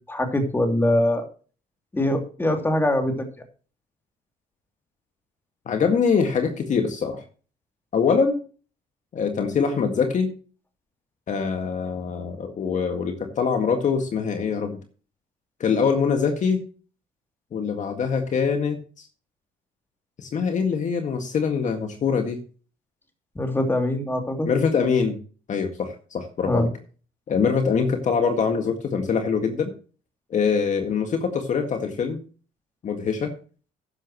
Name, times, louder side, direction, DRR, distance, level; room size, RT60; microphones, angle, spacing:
voice 1, 0.1-1.3 1.9-3.3 23.4-24.5 26.4-26.7, left 1 dB, 15° left, 4 dB, 2.8 m, -23 dB
voice 2, 5.7-7.2 7.9-8.4 9.1-10.3 11.3-14.8 15.6-16.6 17.5-19.1 20.2-22.4 24.5-25.2 25.5-26.7 27.3-29.7 30.3-32.2 32.8-33.3, left 6 dB, 45° left, 5 dB, 1.8 m, -23 dB
13.0 x 10.5 x 3.0 m, 0.38 s
cardioid pair, 110°, 17 cm